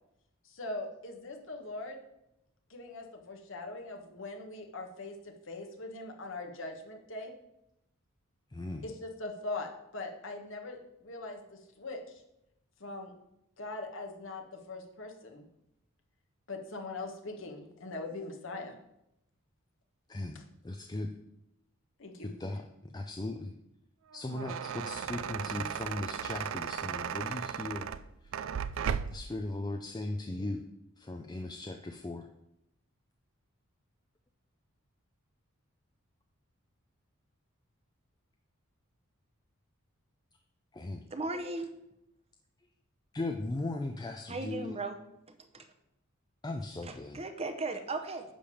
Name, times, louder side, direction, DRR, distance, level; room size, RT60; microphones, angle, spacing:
voice 1, 0.4-2.0 2.7-7.3 8.8-12.2 12.8-13.1 13.6-15.4 16.5-18.8 22.0-22.3, left 2 dB, 60° left, 2 dB, 1.4 m, -41 dB
voice 2, 8.5-8.8 20.1-20.4 20.6-21.1 22.2-23.5 24.1-27.9 29.1-30.6 31.0-32.3 40.7-41.0 43.1-44.8 46.4-47.2, left 2 dB, 20° left, 5 dB, 0.4 m, -38 dB
sound 1, 24.1-29.3, right 7 dB, 65° right, 0.4 m, -36 dB
voice 3, 41.1-41.7 44.3-45.0 45.5-45.7 46.8-48.2, right 3 dB, 30° right, 7 dB, 0.7 m, -36 dB
10.0 x 3.5 x 7.0 m, 0.84 s
head